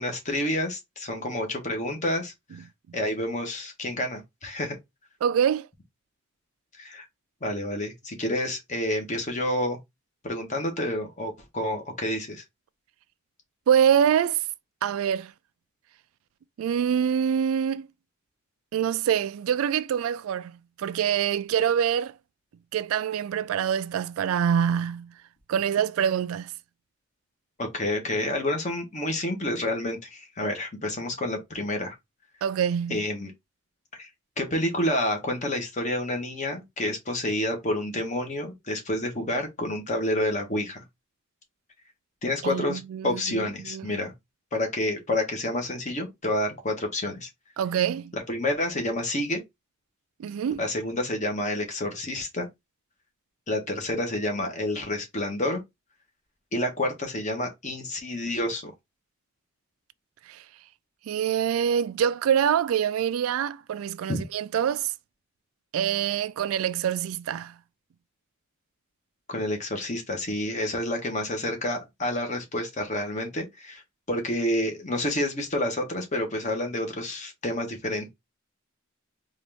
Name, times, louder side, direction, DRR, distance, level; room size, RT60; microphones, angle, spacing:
voice 1, 0.0-2.6 2.9-4.8 6.8-7.0 7.4-9.8 10.2-12.4 27.6-32.0 32.9-33.3 33.9-34.1 34.4-40.8 42.2-44.1 44.5-47.3 48.1-49.4 50.6-52.5 53.5-55.6 56.5-58.7 64.1-64.2 69.3-73.8 74.1-78.1, left 1 dB, 35° left, 1.1 m, -29 dB
voice 2, 5.2-5.7 13.7-14.4 14.8-15.3 16.6-17.9 18.7-22.1 22.7-25.1 25.5-26.5 32.4-33.0 42.4-43.9 47.6-48.1 50.2-50.6 60.3-60.4 61.1-64.9 65.7-67.5, right 8 dB, 80° right, 0.3 m, -25 dB
3.9 x 2.5 x 3.4 m
head